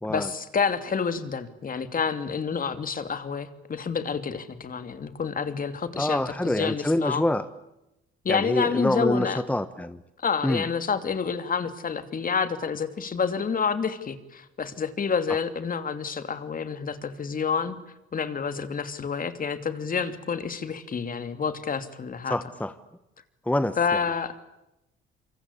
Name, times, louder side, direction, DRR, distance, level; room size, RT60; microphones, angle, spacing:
voice 1, 0.1-7.2 8.2-9.4 10.2-17.8 18.1-22.4 23.8-24.5, left 6 dB, 40° left, 10 dB, 2.9 m, -29 dB
voice 2, 5.9-7.5 8.3-10.0 10.4-10.6 22.3-22.7 23.4-24.0, left 1 dB, 5° left, 12 dB, 1.3 m, -26 dB
28.0 x 24.5 x 8.4 m, 0.90 s
cardioid pair, 95°, 21 cm